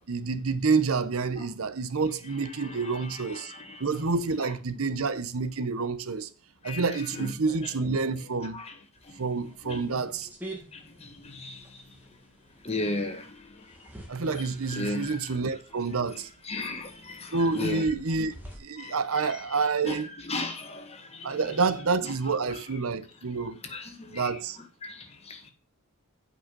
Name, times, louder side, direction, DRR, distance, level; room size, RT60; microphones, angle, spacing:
voice 1, 0.0-3.5 3.8-6.3 6.6-8.6 9.2-10.3 14.1-16.3 17.3-18.3 18.6-20.1 21.2-23.6 24.1-24.6, right 4 dB, 70° right, 0.8 m, -28 dB
voice 2, 2.4-4.0 4.4-4.5 6.6-7.7 8.0-8.8 9.0-10.0 10.7-12.2 12.6-15.4 16.1-17.9 18.8-19.6 19.8-21.6 22.0-22.2 22.5-22.6 23.6-24.4 24.8-25.5, left 2 dB, 30° left, 1.6 m, -38 dB
sound 1, 9.0-18.6, right 1 dB, 10° right, 2.0 m, -49 dB
8.7 x 5.6 x 5.9 m
head